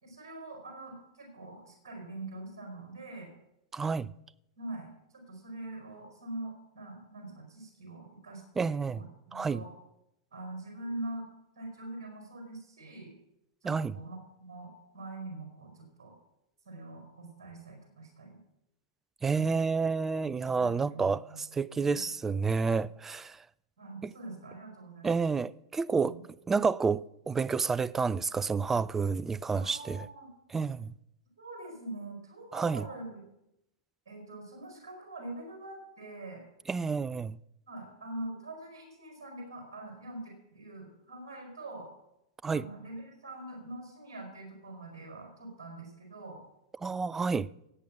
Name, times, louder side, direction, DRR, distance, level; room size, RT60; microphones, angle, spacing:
voice 1, 0.0-3.3 4.6-9.7 10.3-11.3 11.5-13.1 13.6-16.1 16.6-18.4 19.3-19.6 20.5-21.4 21.9-22.1 23.8-25.2 26.0-26.2 29.6-30.3 31.4-33.2 34.1-36.5 37.7-41.9 42.5-46.4, right 2 dB, 60° right, 4.9 m, -44 dB
voice 2, 3.7-4.1 8.6-9.0 9.3-9.6 13.6-14.0 19.2-23.4 25.0-26.2 26.5-30.0 30.5-30.9 32.5-32.8 36.7-37.4 42.4-42.7 46.8-47.5, right 5 dB, 15° right, 0.4 m, -29 dB
16.5 x 8.6 x 6.2 m
figure-of-eight pair, 95°, 2 cm